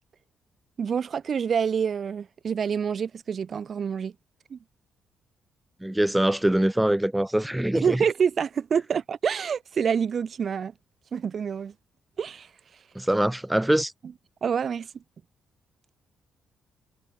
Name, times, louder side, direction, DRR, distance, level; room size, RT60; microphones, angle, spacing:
voice 1, 0.8-4.1 4.5-4.6 7.7-10.7 11.1-11.7 12.2-12.5 14.4-15.0, right 7 dB, 50° right, 1.5 m, -27 dB
voice 2, 5.8-8.0 12.9-13.9, right 1 dB, 5° right, 0.8 m, -23 dB
cardioid pair, 90°, 0 cm